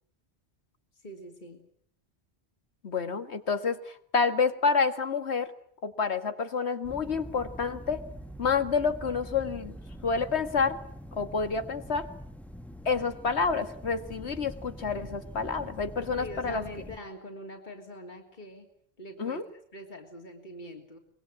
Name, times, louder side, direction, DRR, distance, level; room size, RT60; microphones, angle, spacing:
voice 1, 0.9-1.6 16.1-18.7 19.0-21.0, left 1 dB, 45° left, 3 dB, 3.1 m, -43 dB
voice 2, 2.8-5.5 5.8-8.0 8.4-9.7 10.0-10.8 11.1-12.1 12.9-16.6 19.2-19.4, left 5 dB, 85° left, 9 dB, 2.0 m, -28 dB
sound 1, 6.8-17.0, equal, ahead, 1.3 m, -44 dB
25.0 x 22.0 x 8.8 m, 0.64 s
omnidirectional pair, 1.1 m